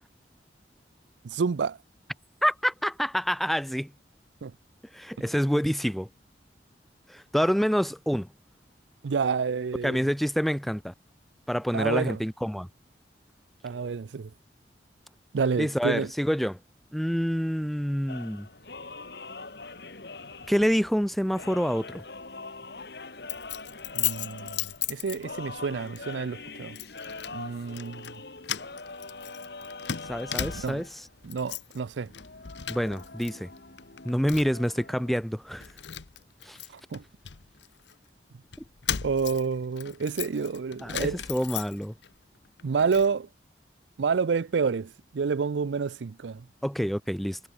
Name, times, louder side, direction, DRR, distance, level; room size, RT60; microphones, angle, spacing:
voice 1, 1.2-1.8 4.4-4.5 9.0-10.0 11.7-12.2 13.6-14.3 15.3-16.1 23.9-26.8 27.3-28.1 30.6-30.8 31.2-32.1 36.9-37.0 39.0-41.2 42.6-43.3 44.0-46.5, right 5 dB, 85° right, 0.5 m, -29 dB
voice 2, 2.4-3.9 4.9-6.1 7.1-8.3 9.8-10.9 11.5-12.7 15.6-16.6 16.9-18.5 20.5-22.0 30.1-31.1 32.7-33.5 34.0-35.7 36.4-36.6 40.8-41.9 46.6-47.4, equal, ahead, 0.5 m, -27 dB
sound 1, 18.1-35.2, left 3 dB, 65° left, 2.2 m, -43 dB
Keys jangling, 23.3-25.6 26.0-26.2 26.8-27.4 27.7-28.2 28.4-30.9 31.2-31.8 32.1-33.3 33.6-34.7 35.2-35.3 35.6-37.9 38.5-42.1 42.4-43.1, left 10 dB, 80° left, 0.8 m, -36 dB
head